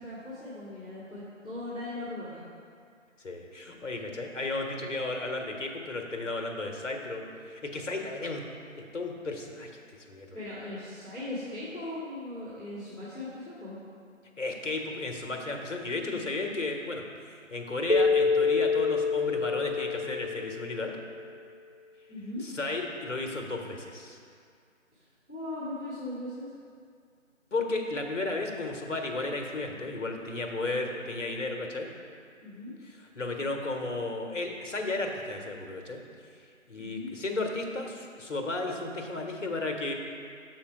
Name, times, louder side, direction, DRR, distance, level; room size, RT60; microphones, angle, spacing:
voice 1, 0.0-2.4 10.3-13.8 22.1-22.4 24.9-26.5 32.4-32.7 36.7-37.1, left 1 dB, 5° right, -23 dB, 0.8 m, -39 dB
voice 2, 3.2-8.4 8.7-10.4 14.4-20.9 22.4-24.2 27.5-31.9 32.8-36.0 36.3-36.4 36.7-39.9, left 2 dB, 65° left, 2 dB, 1.0 m, -34 dB
Keyboard (musical), 17.9-21.1, left 4 dB, 30° left, 0.6 m, -27 dB
7.2 x 4.5 x 4.7 m, 2.3 s
figure-of-eight pair, 160°, 40 cm